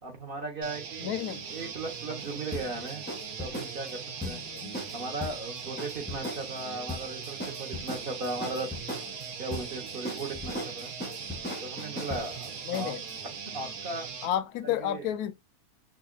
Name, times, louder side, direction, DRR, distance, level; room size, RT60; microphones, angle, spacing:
voice 1, 0.0-1.2 1.5-3.1 3.4-4.0 4.3-4.4 4.9-9.0 9.4-10.9 11.6-12.9 13.5-14.1 14.6-15.1, right 2 dB, 40° right, 1.1 m, -37 dB
sound 1, 0.6-14.3, right 6 dB, 70° right, 1.2 m, -40 dB
voice 2, 1.0-1.4 4.2-4.7 12.7-13.0 14.2-15.3, left 11 dB, 75° left, 1.0 m, -31 dB
sound 2, 1.2-13.2, left 1 dB, 10° left, 0.5 m, -40 dB
4.8 x 2.5 x 2.3 m
omnidirectional pair, 1.7 m